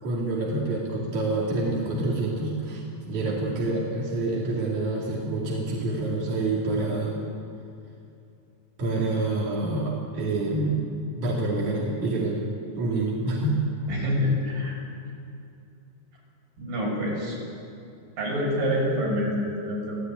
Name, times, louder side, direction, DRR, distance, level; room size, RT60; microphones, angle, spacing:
voice 1, 0.0-7.2 8.8-10.8 11.2-12.4 12.8-13.6, right 2 dB, 60° right, -4 dB, 4.1 m, -27 dB
voice 2, 13.9-14.8 16.6-17.4 18.2-20.0, left 1 dB, 80° right, -3 dB, 8.5 m, -26 dB
26.5 x 17.0 x 9.4 m, 2.6 s
omnidirectional pair, 3.9 m